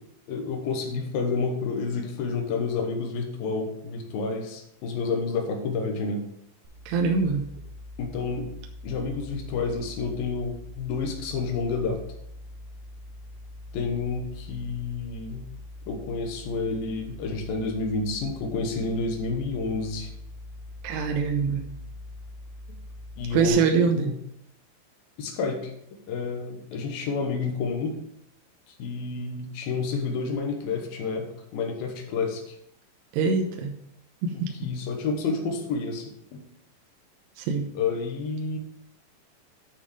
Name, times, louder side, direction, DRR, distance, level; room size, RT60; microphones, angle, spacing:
voice 1, 0.3-6.3 8.0-8.5 8.8-12.0 13.7-15.5 15.9-20.1 23.2-24.2 25.2-25.7 26.1-28.0 28.8-32.6 34.3-36.4 37.7-38.6, left 4 dB, 70° left, 3 dB, 2.3 m, -29 dB
sound 1, 6.6-23.5, left 1 dB, 55° right, 4.0 m, -43 dB
voice 2, 6.9-7.4 20.8-21.6 23.3-24.1 33.1-33.7 34.2-34.5 37.4-37.6, right 5 dB, 75° right, 3 dB, 2.6 m, -24 dB
9.1 x 6.2 x 4.8 m, 0.75 s
omnidirectional pair, 5.5 m